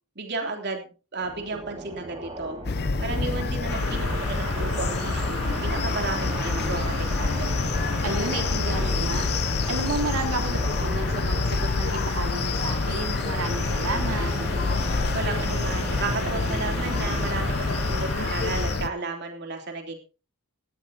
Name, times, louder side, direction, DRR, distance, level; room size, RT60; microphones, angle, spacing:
voice 1, 0.1-2.6 3.0-6.9 7.2-7.5 15.1-20.0, right 3 dB, 50° right, 3 dB, 3.2 m, -33 dB
sound 1, 1.2-18.1, right 1 dB, 25° right, 4.8 m, -37 dB
sound 2, 2.6-18.9, left 3 dB, 50° left, 0.7 m, -27 dB
sound 3, 3.6-18.7, left 1 dB, 80° left, 7.8 m, -35 dB
voice 2, 8.0-9.3 9.7-14.3, right 3 dB, 85° right, 3 dB, 2.5 m, -32 dB
18.5 x 13.5 x 2.9 m, 0.33 s
head